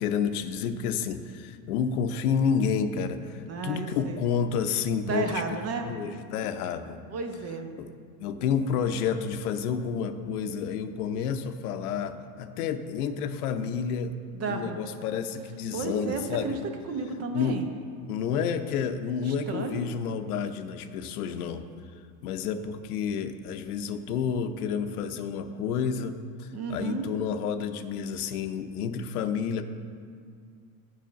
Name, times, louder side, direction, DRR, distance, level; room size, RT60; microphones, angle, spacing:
voice 1, 0.0-5.4 5.8-7.0 7.8-7.9 8.2-14.2 14.5-16.6 17.3-17.6 18.1-21.6 22.2-29.6, left 6 dB, 80° left, 9 dB, 0.7 m, -30 dB
voice 2, 3.5-4.2 5.1-5.8 7.1-7.7 14.3-14.8 15.7-16.6 16.9-17.7 19.3-19.8 26.5-27.1, right 4 dB, 35° right, 5 dB, 0.9 m, -32 dB
7.7 x 4.9 x 6.7 m, 2.1 s
supercardioid pair, 125°, 44 cm